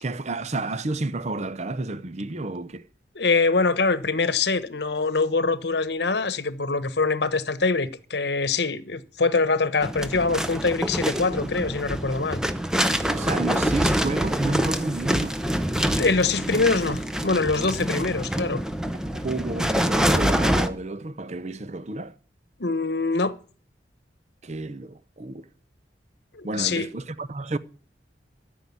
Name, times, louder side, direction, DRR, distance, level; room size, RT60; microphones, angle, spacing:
voice 1, 0.0-2.9 13.1-15.4 19.0-22.1 24.4-25.5 26.4-27.6, right 2 dB, 40° right, 0.7 m, -31 dB
voice 2, 3.1-12.4 16.0-18.6 22.6-23.3 26.3-26.9, left 3 dB, 70° left, 1.1 m, -24 dB
sound 1, 9.8-20.7, equal, 5° right, 0.8 m, -25 dB
13.5 x 6.4 x 9.6 m
head